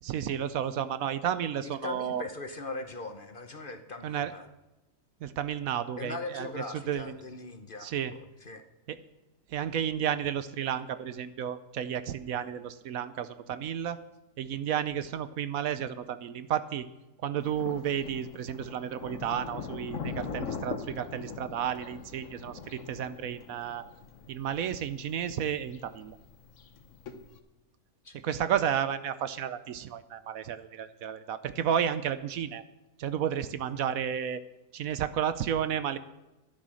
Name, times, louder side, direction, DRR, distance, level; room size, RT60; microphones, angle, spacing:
voice 1, 0.0-2.2 4.0-4.3 5.2-7.1 7.8-8.1 8.9-9.0 9.5-14.0 14.4-16.9 17.2-23.8 24.3-26.2 28.2-32.6 33.0-34.4 34.7-36.0, right 9 dB, 70° right, 13 dB, 1.1 m, -32 dB
voice 2, 1.6-4.4 6.0-8.6 28.0-28.2, left 3 dB, 40° left, 8 dB, 0.9 m, -40 dB
Thunder, 17.4-27.4, left 5 dB, 60° left, 1.3 m, -42 dB
12.0 x 10.5 x 6.3 m, 1.0 s
omnidirectional pair, 1.6 m